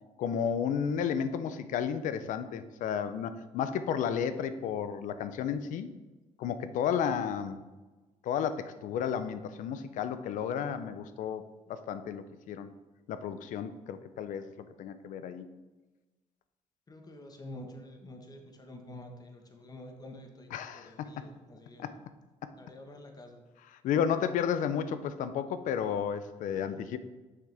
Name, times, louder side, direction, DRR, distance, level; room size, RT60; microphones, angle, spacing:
voice 1, 0.2-5.9 6.4-7.6 8.2-11.4 11.7-12.7 13.1-15.5 20.5-21.3 21.8-21.9 22.4-22.5 23.8-27.0, left 8 dB, 75° left, 11 dB, 0.5 m, -32 dB
voice 2, 16.9-21.9 22.6-23.4 26.5-26.8, left 1 dB, 30° left, 3 dB, 1.1 m, -48 dB
6.4 x 5.8 x 3.4 m, 1.2 s
cardioid pair, 95°, 13 cm